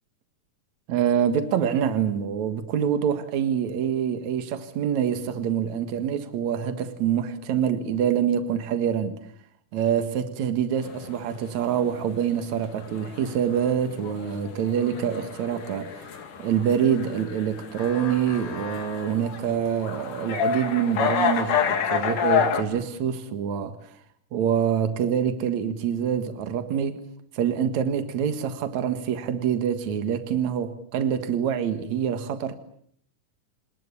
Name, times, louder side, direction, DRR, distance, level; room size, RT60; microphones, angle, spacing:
voice 1, 0.9-9.2 9.7-15.9 16.4-23.8 24.3-27.1 27.3-32.5, right 8 dB, 65° right, 2.9 m, -26 dB
sound 1, 10.8-22.6, left 7 dB, 80° left, 3.8 m, -29 dB
28.0 x 20.0 x 8.7 m
omnidirectional pair, 3.6 m